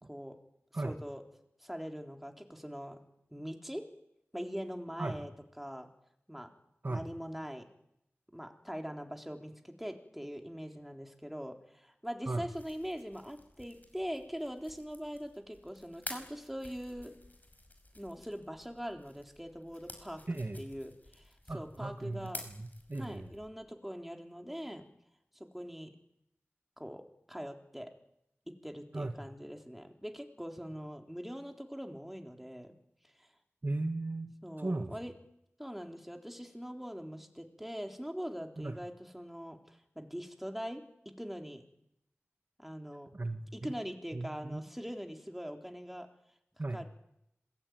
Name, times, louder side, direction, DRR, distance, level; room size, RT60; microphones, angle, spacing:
voice 1, 0.0-0.4 0.8-1.2 1.6-3.0 3.3-3.8 4.3-5.3 5.6-5.9 6.3-6.5 6.9-7.7 8.3-17.1 17.9-20.2 20.6-22.4 23.0-24.9 25.3-25.9 26.8-27.0 27.3-27.9 28.5-32.8 33.2-33.3 34.4-35.1 35.6-40.8 41.2-41.6 42.6-43.1 43.5-46.1 46.7-46.9, equal, 5° right, 4 dB, 3.8 m, -42 dB
sound 1, 12.3-23.5, left 1 dB, 40° left, 5.7 m, -51 dB
voice 2, 20.3-20.6 21.5-23.3 28.9-29.1 33.6-34.9 38.6-38.8 43.1-43.7 44.1-44.6 46.6-46.8, right 2 dB, 45° right, 6 dB, 1.9 m, -37 dB
26.5 x 22.0 x 9.6 m, 0.80 s
wide cardioid pair, 70°, 5 cm